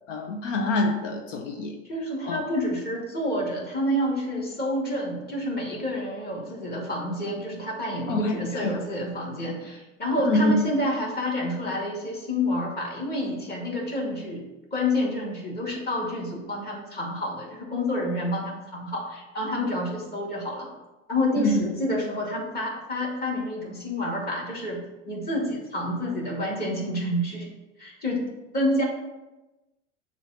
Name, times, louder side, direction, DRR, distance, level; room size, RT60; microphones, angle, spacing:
voice 1, 0.1-1.8 2.3-2.4 8.1-8.7 10.2-10.6 21.4-21.5, left 2 dB, 80° left, 3 dB, 0.8 m, -25 dB
voice 2, 1.8-14.5 14.7-20.7 21.1-27.5 27.8-28.2 28.5-28.8, left 1 dB, 25° left, -3 dB, 2.1 m, -28 dB
6.9 x 2.6 x 5.6 m, 1.0 s
hypercardioid pair, 100°, 37 cm